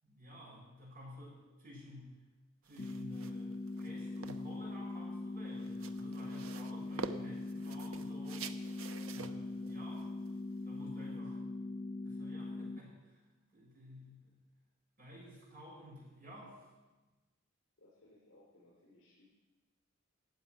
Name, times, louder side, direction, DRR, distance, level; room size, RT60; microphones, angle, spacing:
voice 1, 0.0-2.2 2.6-8.5 9.1-10.2 10.6-11.5 12.0-13.2 13.5-14.3 15.0-16.7, equal, 45° right, -4 dB, 6.9 m, -52 dB
sound 1, 2.6-11.2, right 4 dB, 75° right, 0.8 m, -49 dB
sound 2, 2.8-12.8, left 2 dB, 30° left, 0.5 m, -42 dB
voice 2, 8.9-9.2 11.1-11.3 17.8-19.2, left 1 dB, 65° left, -7 dB, 5.9 m, -63 dB
15.0 x 8.3 x 9.3 m, 1.2 s
head